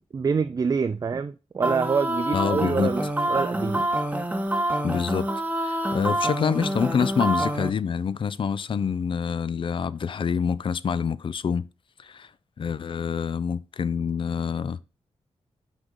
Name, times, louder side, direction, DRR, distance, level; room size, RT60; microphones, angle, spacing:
voice 1, 0.1-3.9, right 5 dB, 35° right, 0.3 m, -26 dB
sound 1, 1.6-7.7, right 1 dB, 10° right, 0.9 m, -27 dB
voice 2, 2.3-2.9 4.8-5.3 5.5-11.7 12.0-12.3 12.6-14.8, left 6 dB, 50° left, 0.4 m, -26 dB
6.2 x 3.9 x 4.9 m
cardioid pair, 80°, 12 cm